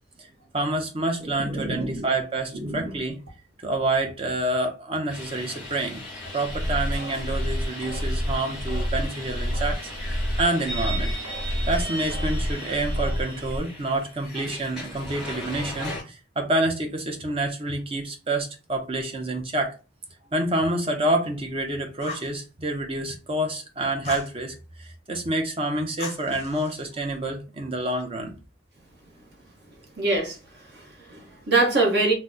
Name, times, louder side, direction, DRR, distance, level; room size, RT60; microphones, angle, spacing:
voice 1, 0.5-3.2 3.6-6.0 6.3-9.8 10.1-11.1 11.7-19.7 20.3-28.3, right 2 dB, 30° right, 0.6 m, -28 dB
voice 2, 1.2-2.1 2.5-3.0 30.0-32.1, right 2 dB, 55° right, 0.9 m, -25 dB
sound 1, 5.1-16.0, left 1 dB, ahead, 1.1 m, -37 dB
sound 2, 6.3-13.6, equal, 75° right, 0.6 m, -29 dB
Fire, 22.0-22.4 24.0-24.3 26.0-26.9, left 4 dB, 30° left, 0.5 m, -38 dB
2.8 x 2.0 x 3.6 m
head